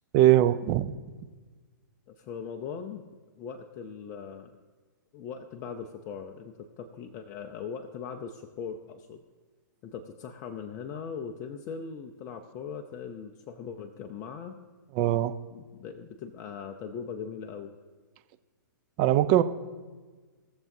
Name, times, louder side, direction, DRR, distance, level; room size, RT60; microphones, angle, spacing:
voice 1, 0.1-0.9 15.0-15.3 19.0-19.4, right 13 dB, 35° right, 11 dB, 0.6 m, -21 dB
voice 2, 2.1-3.0 3.4-4.6 5.1-9.2 9.8-14.6 15.5-17.7, left 6 dB, 30° left, 4 dB, 0.6 m, -40 dB
19.0 x 7.0 x 2.7 m, 1.4 s
hypercardioid pair, 130°, 11 cm